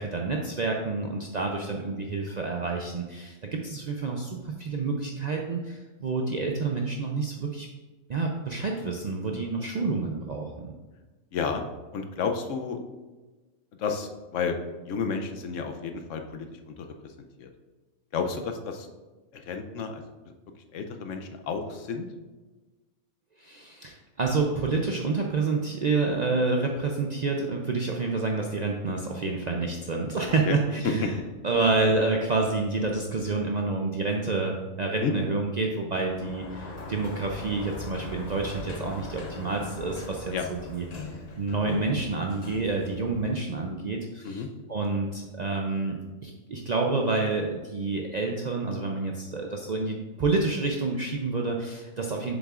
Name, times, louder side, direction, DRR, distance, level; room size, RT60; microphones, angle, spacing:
voice 1, 0.0-7.7 8.1-10.7 23.4-40.8 41.1-44.4 44.7-52.3, right 3 dB, 55° right, 0 dB, 0.4 m, -28 dB
voice 2, 11.3-11.6 11.9-12.8 13.8-14.6 14.9-16.9 17.4-17.5 18.1-18.9 19.3-20.0 20.7-22.1 30.8-31.1 35.0-35.1 40.3-40.4 44.2-44.5, left 5 dB, 75° left, 5 dB, 1.0 m, -31 dB
Sliding door, 35.9-43.7, left 2 dB, 40° left, 0.7 m, -40 dB
7.2 x 7.1 x 2.4 m, 1.2 s
omnidirectional pair, 1.3 m